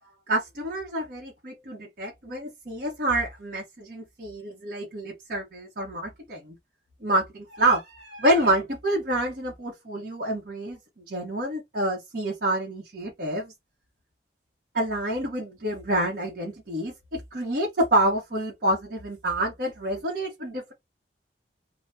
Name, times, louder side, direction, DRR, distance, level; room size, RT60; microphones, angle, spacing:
voice 1, 0.3-6.5 7.0-13.5 14.7-20.7, right 1 dB, 50° right, 0.9 m, -28 dB
2.7 x 2.1 x 3.3 m
head